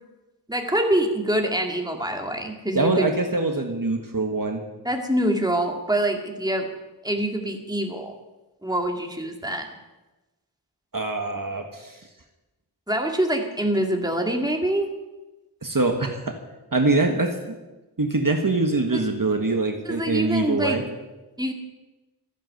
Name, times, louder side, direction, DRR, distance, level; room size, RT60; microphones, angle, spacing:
voice 1, 0.5-3.1 4.8-6.7 7.0-8.1 8.6-9.8 12.9-14.9 18.9-19.0 19.8-20.8 21.4-21.5, right 1 dB, 10° right, 3 dB, 2.3 m, -25 dB
voice 2, 2.7-4.6 10.9-12.0 15.6-16.4 16.7-17.5 18.0-20.8, right 2 dB, 50° right, 4 dB, 1.6 m, -24 dB
14.5 x 11.0 x 7.9 m, 1.1 s
wide cardioid pair, 50°, 41 cm